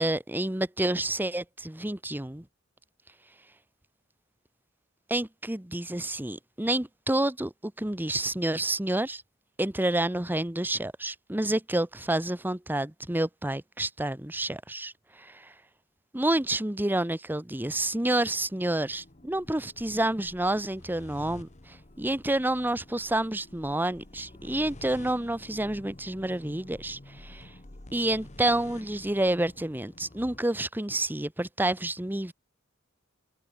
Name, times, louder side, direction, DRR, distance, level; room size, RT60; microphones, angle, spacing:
voice 1, 0.0-2.4 5.1-9.2 9.6-15.5 16.1-27.5 27.9-32.3, right 1 dB, 10° right, 1.0 m, -29 dB
sound 1, 17.7-30.4, left 1 dB, 35° left, 1.6 m, -50 dB
head